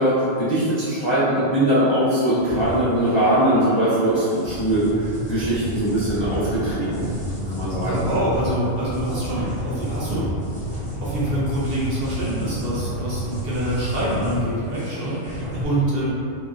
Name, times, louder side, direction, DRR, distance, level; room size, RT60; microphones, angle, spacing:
voice 1, 0.0-7.0 7.5-8.0, right 1 dB, 40° left, -12 dB, 0.4 m, -21 dB
sound 1, 2.4-15.6, equal, 5° left, 0.8 m, -31 dB
voice 2, 6.9-7.2 7.8-10.3 10.8-16.2, right 1 dB, 55° right, -7 dB, 0.7 m, -26 dB
2.9 x 2.8 x 2.4 m, 2.4 s
omnidirectional pair, 1.3 m